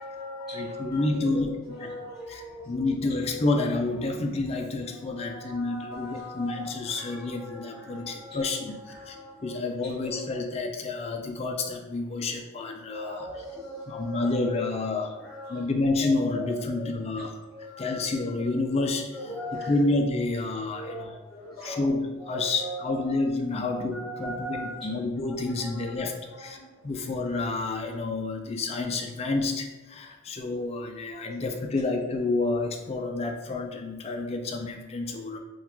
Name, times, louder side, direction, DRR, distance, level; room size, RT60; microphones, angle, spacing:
voice 1, 0.0-1.4 1.7-2.8 5.0-6.5 6.9-8.4 8.9-9.5 10.1-10.2 12.9-14.3 14.6-14.8 15.2-15.6 16.0-16.8 17.1-17.2 17.5-18.0 19.1-19.9 20.7-21.8 22.3-23.0 23.7-26.1 26.5-26.7 31.3-31.4, equal, ahead, -10 dB, 0.7 m, -39 dB
voice 2, 0.5-1.5 1.8-1.9 2.3-9.2 9.4-13.4 13.9-15.2 15.5-17.4 17.8-19.4 19.7-21.2 21.6-26.1 26.4-26.6 26.8-35.4, left 2 dB, 30° left, 3 dB, 0.3 m, -29 dB
3.7 x 2.3 x 4.3 m, 1.2 s
head